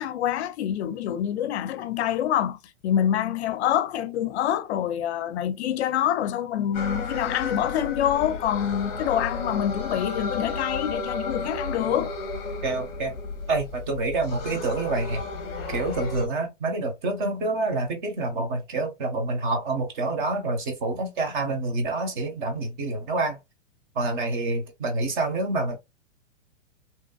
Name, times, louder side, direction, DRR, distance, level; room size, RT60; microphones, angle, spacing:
voice 1, 0.0-12.1, left 10 dB, 60° left, 0.5 m, -26 dB
sound 1, 6.7-16.3, left 3 dB, 25° left, 0.7 m, -33 dB
voice 2, 12.6-13.1 13.5-15.2 15.7-23.4 24.0-25.8, right 2 dB, 40° right, 1.1 m, -27 dB
2.9 x 2.3 x 2.3 m
hypercardioid pair, 150°, 37 cm